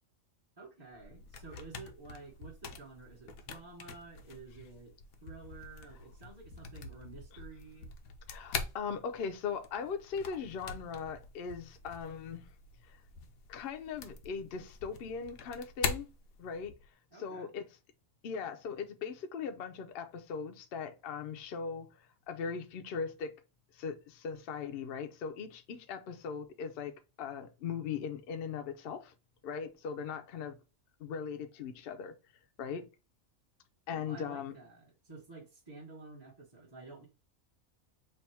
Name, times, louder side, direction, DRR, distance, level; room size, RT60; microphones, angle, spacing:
voice 1, 0.6-4.9 5.2-7.9 17.1-17.5 33.9-37.1, right 3 dB, 20° right, 0.9 m, -51 dB
sound 1, 0.9-16.9, left 5 dB, 85° left, 1.1 m, -44 dB
voice 2, 8.3-12.5 12.9-13.0 13.5-16.1 16.4-16.7 17.2-17.6 18.2-23.4 23.7-29.1 29.4-30.6 31.0-32.2 32.6-32.9 33.9-34.5, left 6 dB, 55° left, 0.7 m, -39 dB
3.3 x 2.5 x 4.3 m
omnidirectional pair, 1.4 m